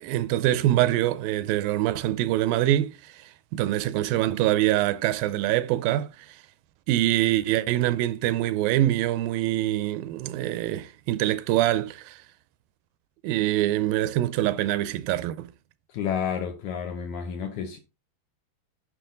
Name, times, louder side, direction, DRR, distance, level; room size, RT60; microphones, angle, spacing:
voice 1, 0.0-6.4 6.9-12.2 13.2-15.5, right 14 dB, 80° right, 2.2 m, -24 dB
voice 2, 15.9-17.8, left 7 dB, 70° left, 1.9 m, -30 dB
10.0 x 6.2 x 3.8 m
omnidirectional pair, 4.3 m